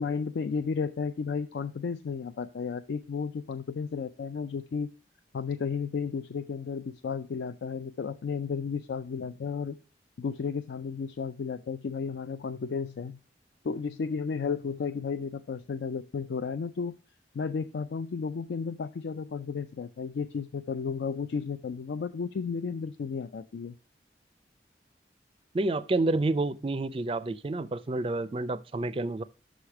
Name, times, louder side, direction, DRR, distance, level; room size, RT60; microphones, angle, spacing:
voice 1, 0.0-4.9 5.3-9.8 10.2-13.2 13.6-17.0 17.3-23.8, left 5 dB, 75° left, 0.4 m, -33 dB
voice 2, 25.5-29.2, right 2 dB, 30° right, 0.4 m, -29 dB
6.3 x 4.9 x 5.8 m
head